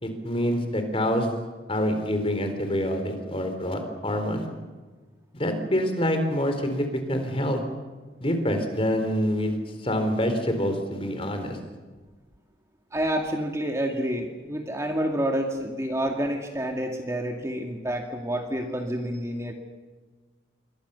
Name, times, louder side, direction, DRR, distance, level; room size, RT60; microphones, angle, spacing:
voice 1, 0.0-1.3 1.7-4.5 5.3-7.6 8.2-11.6, equal, 30° left, 6 dB, 4.0 m, -26 dB
voice 2, 12.9-19.5, right 1 dB, 15° right, 3 dB, 2.2 m, -28 dB
28.0 x 24.0 x 7.0 m, 1.3 s
head